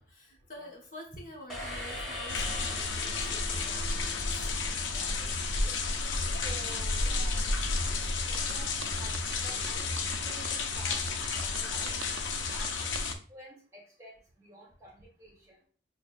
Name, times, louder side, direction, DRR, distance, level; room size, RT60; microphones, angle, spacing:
voice 1, 0.0-4.5, left 1 dB, 45° left, -1 dB, 0.9 m, -48 dB
sound 1, 1.5-5.3, left 1 dB, ahead, 1.2 m, -41 dB
sound 2, 2.3-13.1, left 3 dB, 85° left, 0.5 m, -31 dB
voice 2, 4.9-5.8 6.4-7.5 8.3-12.0 12.5-12.7 13.3-15.6, right 1 dB, 15° right, -3 dB, 1.0 m, -50 dB
sound 3, 7.9-13.2, right 7 dB, 85° right, 0.3 m, -45 dB
6.1 x 2.1 x 2.4 m, 0.42 s
head